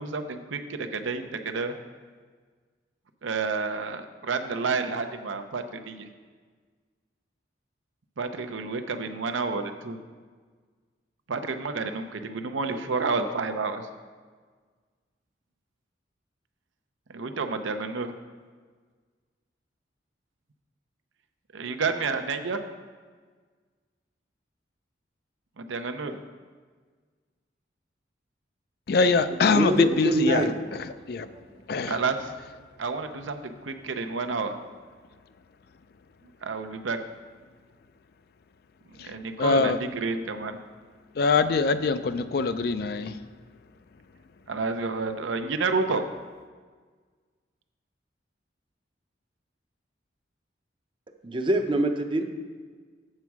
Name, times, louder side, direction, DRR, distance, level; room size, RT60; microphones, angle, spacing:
voice 1, 0.0-1.7 3.2-6.1 8.2-10.0 11.3-13.9 17.1-18.1 21.5-22.6 25.6-26.2 31.9-32.4 32.8-34.6 36.4-37.0 39.0-40.6 44.5-46.1, right 4 dB, 90° right, 8 dB, 0.6 m, -30 dB
voice 2, 28.9-30.4 31.1-31.3 31.7-32.0 39.0-39.1 39.4-39.8 41.2-43.2, left 4 dB, 55° left, 12 dB, 0.4 m, -23 dB
voice 3, 29.5-30.6 31.2-31.6 51.2-52.2, right 1 dB, 25° right, 6 dB, 0.5 m, -25 dB
7.5 x 7.1 x 4.7 m, 1.5 s
head